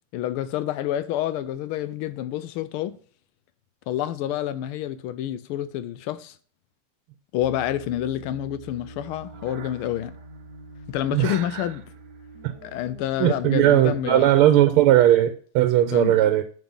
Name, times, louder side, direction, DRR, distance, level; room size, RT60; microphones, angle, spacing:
voice 1, 0.1-2.9 3.9-6.4 7.3-10.1 10.9-11.8 12.6-14.3 15.8-16.1, left 12 dB, 90° left, 1.5 m, -28 dB
Piano, 7.4-15.1, right 1 dB, 70° left, 0.6 m, -48 dB
sound 1, 8.3-14.7, right 4 dB, 60° right, 1.3 m, -47 dB
voice 2, 11.1-11.6 12.4-12.5 13.2-16.4, right 12 dB, 90° right, 1.5 m, -18 dB
5.9 x 5.4 x 5.4 m
omnidirectional pair, 2.3 m